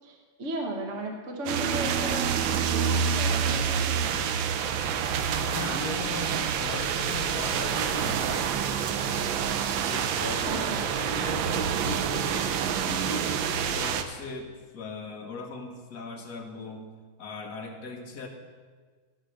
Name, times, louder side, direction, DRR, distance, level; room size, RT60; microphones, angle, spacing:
voice 1, 0.0-4.4 10.4-10.8, right 1 dB, 40° right, 2 dB, 1.4 m, -36 dB
sound 1, 1.5-14.0, right 7 dB, 75° right, 1.4 m, -27 dB
voice 2, 4.6-5.2 5.5-8.7 9.0-9.4 9.8-16.9 17.2-18.3, left 3 dB, 55° left, 1 dB, 1.8 m, -38 dB
14.0 x 5.9 x 6.4 m, 1.5 s
omnidirectional pair, 2.2 m